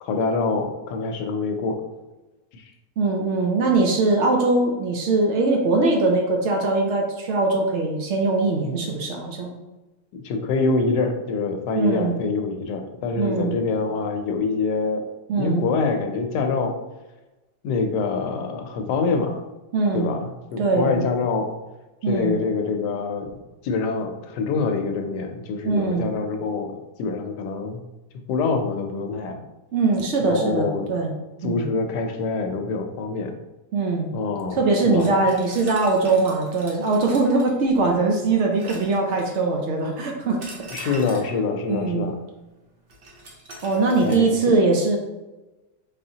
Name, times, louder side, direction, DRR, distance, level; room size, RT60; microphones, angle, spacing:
voice 1, 0.0-1.8 2.5-2.6 10.2-15.0 15.4-16.8 17.6-19.4 19.9-21.5 22.1-23.3 23.6-27.8 28.3-29.4 30.2-30.9 31.4-33.3 34.1-34.6 34.8-35.2 40.7-42.2 44.0-44.3, left 4 dB, 75° left, 5 dB, 1.2 m, -25 dB
voice 2, 3.0-9.5 11.8-12.1 13.1-13.5 15.3-15.6 19.7-20.1 20.6-21.0 22.0-22.4 25.6-26.1 29.7-31.1 31.4-31.7 33.7-34.1 34.6-41.0 41.7-42.1 43.6-45.0, right 3 dB, 90° right, 1 dB, 0.6 m, -21 dB
sound 1, 35.0-38.0 38.6-39.6 40.4-41.4 42.9-44.2, right 2 dB, 50° right, 0.7 m, -43 dB
4.1 x 3.7 x 2.7 m, 1.1 s
omnidirectional pair, 1.9 m